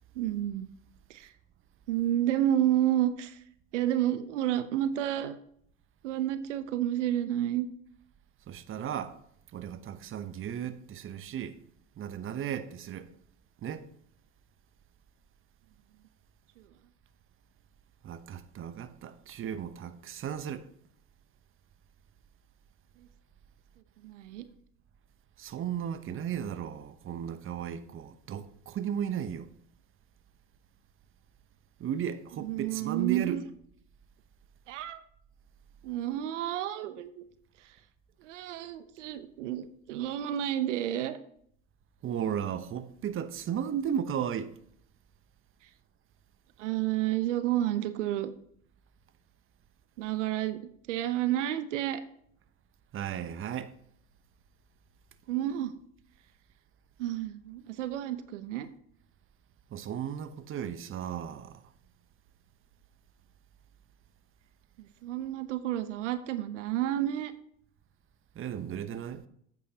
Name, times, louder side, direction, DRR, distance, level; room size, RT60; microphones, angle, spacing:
voice 1, 0.1-0.7 1.1-1.3 1.9-3.4 3.7-5.4 6.0-7.7 16.6-16.7 23.0-23.1 24.0-24.5 32.4-33.4 34.7-35.0 35.8-37.2 37.6-37.8 38.2-41.2 46.6-48.3 50.0-50.6 50.9-52.0 55.3-55.7 57.0-58.7 64.8-67.3, right 12 dB, 80° right, 0.7 m, -30 dB
voice 2, 8.5-9.2 9.5-11.5 12.0-13.1 13.6-13.8 18.0-20.7 25.4-29.5 31.8-33.4 42.0-44.5 52.9-53.7 59.7-61.6 68.4-69.2, right 9 dB, 35° right, 0.9 m, -35 dB
10.5 x 8.4 x 2.8 m
hypercardioid pair, 75°, 36 cm